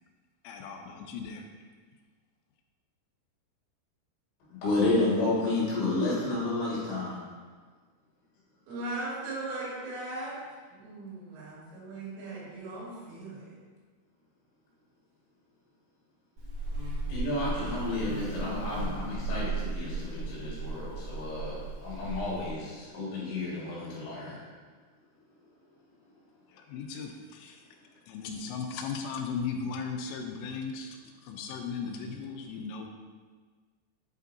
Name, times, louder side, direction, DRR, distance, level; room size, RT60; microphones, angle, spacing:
voice 1, 0.4-1.4 26.5-27.6 28.1-31.0 31.2-32.9, left 5 dB, 85° left, 3 dB, 3.2 m, -37 dB
voice 2, 4.5-7.2 17.1-24.4, left 2 dB, 65° left, -7 dB, 3.8 m, -31 dB
voice 3, 8.7-10.4 10.7-13.6, right 2 dB, 80° right, -7 dB, 4.6 m, -38 dB
Buzz, 16.4-22.5, right 3 dB, 60° right, 1.9 m, -35 dB
8.7 x 5.3 x 2.6 m, 1.5 s
omnidirectional pair, 5.7 m